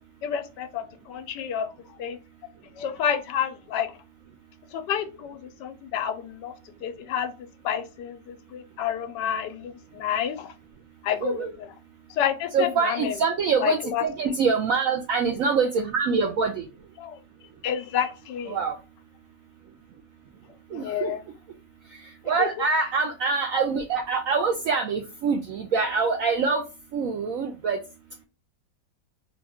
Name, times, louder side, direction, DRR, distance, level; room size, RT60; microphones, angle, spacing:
voice 1, 0.2-1.7 2.0-2.2 2.8-3.9 4.7-6.5 6.8-7.3 7.6-10.5 11.0-11.7 12.1-13.2 13.6-14.0 17.0-17.2 17.6-18.6 20.7-21.2 22.4-22.5, left 9 dB, 80° left, 1.2 m, -29 dB
voice 2, 11.2-11.5 12.5-16.6 18.5-18.8 20.7-21.1 22.3-26.6 26.9-27.8, right 5 dB, 75° right, 0.7 m, -25 dB
3.8 x 2.3 x 3.4 m
omnidirectional pair, 1.9 m